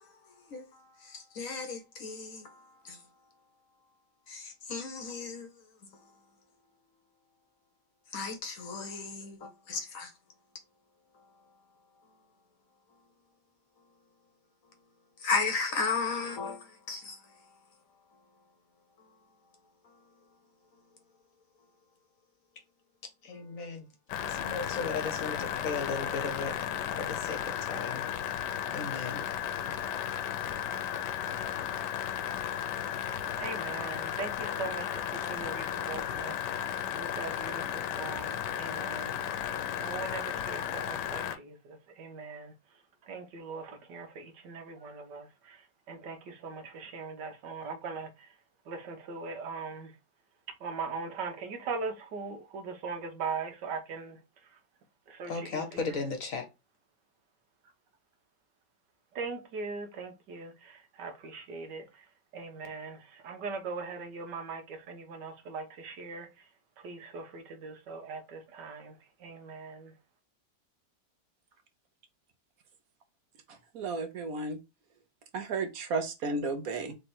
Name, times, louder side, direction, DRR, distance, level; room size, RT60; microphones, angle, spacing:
voice 1, 0.0-3.1 4.3-6.1 8.1-10.1 11.1-11.4 12.0-12.1 15.2-17.6 18.1-18.2 19.0-19.2 19.8-20.1 20.7-20.8 23.2-23.9 24.2-26.6 27.0-28.0 28.7-29.2 29.6-29.8 55.3-56.5, left 4 dB, 60° left, 1.1 m, -36 dB
sound 1, 24.1-41.4, left 10 dB, 80° left, 1.2 m, -34 dB
voice 2, 33.4-39.5 39.8-48.4 48.6-50.0 50.6-54.6 55.1-56.0 59.1-66.5 66.8-69.9, right 4 dB, 85° right, 1.6 m, -41 dB
voice 3, 73.5-74.6 75.3-76.9, right 3 dB, 60° right, 1.1 m, -33 dB
3.4 x 3.3 x 4.2 m
omnidirectional pair, 1.8 m